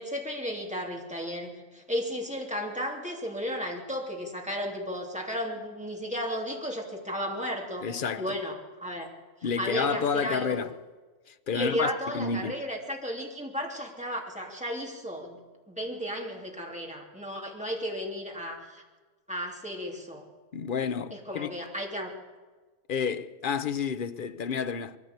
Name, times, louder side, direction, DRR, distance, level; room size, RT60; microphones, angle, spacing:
voice 1, 0.0-7.9 8.2-8.5 8.8-9.1 9.6-10.6 11.5-15.4 15.7-18.8 19.3-20.3 21.1-22.1, equal, 5° right, 2.9 m, -34 dB
voice 2, 7.8-8.4 9.4-10.7 11.3-12.5 20.5-21.6 22.9-25.0, left 6 dB, 50° left, 0.7 m, -30 dB
22.0 x 14.5 x 8.1 m
omnidirectional pair, 1.4 m